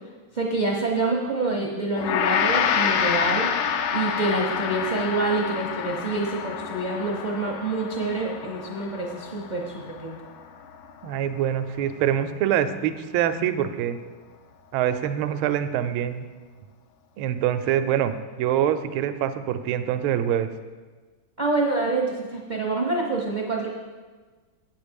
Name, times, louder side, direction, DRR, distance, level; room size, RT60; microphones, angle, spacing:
voice 1, 0.3-3.5 3.9-10.2 21.4-23.7, right 2 dB, 45° right, -1 dB, 0.6 m, -26 dB
Gong, 2.0-11.4, left 7 dB, 80° left, 1.4 m, -28 dB
voice 2, 11.0-14.0 14.7-16.2 17.2-20.5, right 10 dB, 85° right, 10 dB, 1.4 m, -25 dB
8.4 x 8.1 x 5.2 m, 1.4 s
omnidirectional pair, 2.3 m